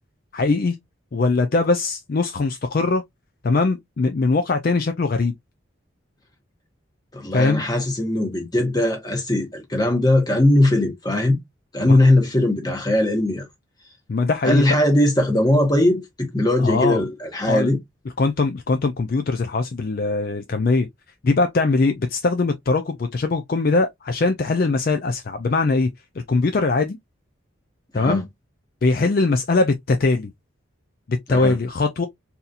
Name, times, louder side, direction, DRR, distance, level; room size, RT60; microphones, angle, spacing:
voice 1, 0.3-0.8 1.1-3.0 3.4-5.3 7.3-7.6 11.8-12.0 14.1-14.8 16.6-17.0 17.5-17.7 18.2-20.9 21.2-25.9 26.3-27.0 27.9-28.2 28.8-30.3 31.1-32.1, left 3 dB, 45° left, 0.4 m, -21 dB
voice 2, 7.1-11.4 11.7-13.5 14.4-17.8 27.9-28.2 31.3-31.6, left 1 dB, 20° left, 1.1 m, -19 dB
4.0 x 2.8 x 2.4 m
head